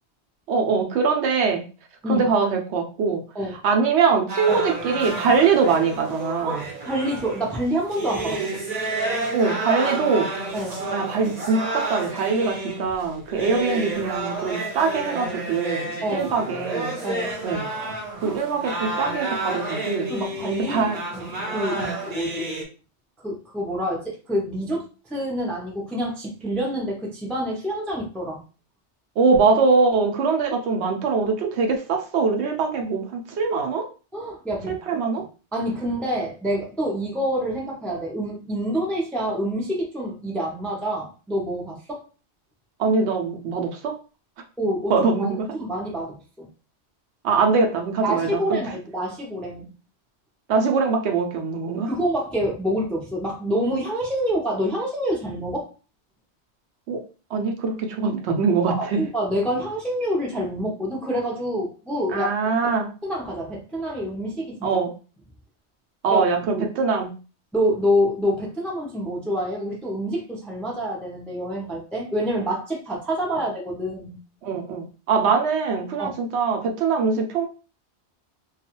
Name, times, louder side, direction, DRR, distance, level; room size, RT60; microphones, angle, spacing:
voice 1, 0.5-1.6 2.1-3.2 3.6-6.7 9.3-10.3 10.9-17.0 17.4-17.7 18.2-20.1 20.7-21.0 21.7-21.9 29.2-33.9 34.7-35.2 42.8-43.9 44.9-45.5 47.2-48.6 50.5-51.9 56.9-57.0 57.3-59.0 62.1-62.9 64.6-64.9 66.0-67.1 74.4-77.5, right 5 dB, 75° right, 3 dB, 0.8 m, -22 dB
sound 1, 4.3-22.6, right 2 dB, 40° right, 0.7 m, -30 dB
voice 2, 6.4-8.4 10.5-10.8 16.0-16.3 17.0-17.4 18.2-18.4 20.1-22.5 23.2-28.4 34.1-35.2 35.5-42.0 44.6-46.5 48.0-49.7 51.8-55.7 58.7-62.3 62.6-62.7 63.0-64.6 66.1-66.5 67.5-74.2 76.0-76.1, equal, ahead, -2 dB, 0.4 m, -27 dB
2.3 x 2.3 x 2.9 m, 0.35 s
omnidirectional pair, 1.2 m